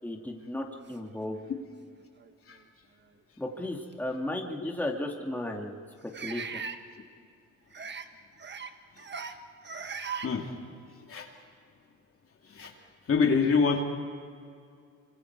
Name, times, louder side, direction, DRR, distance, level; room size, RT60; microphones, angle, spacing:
voice 1, 0.0-1.4 3.4-5.8 6.2-6.6, left 1 dB, 5° left, 0 dB, 2.4 m, -34 dB
sound 1, 1.3-1.4 2.2-2.3 3.9-4.0 6.1-6.8 7.7-8.1 8.4-8.7 9.0-9.4 9.6-10.3, right 6 dB, 35° right, 1.4 m, -38 dB
voice 2, 13.1-13.8, left 5 dB, 45° left, 2 dB, 2.8 m, -25 dB
26.0 x 25.0 x 4.8 m, 2.2 s
cardioid pair, 90°, 30 cm